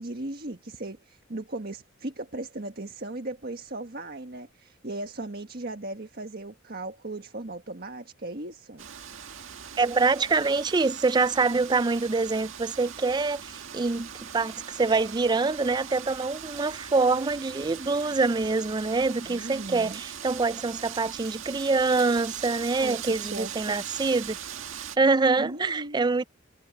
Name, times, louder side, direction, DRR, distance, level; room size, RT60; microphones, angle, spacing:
voice 1, 0.0-8.9 19.3-20.0 22.8-23.8 25.4-26.0, right 2 dB, 50° right, 1.6 m, -37 dB
Wind, 8.8-25.0, right 8 dB, 75° right, 1.9 m, -40 dB
voice 2, 9.8-24.4 25.0-26.2, right 3 dB, 20° right, 0.4 m, -25 dB
head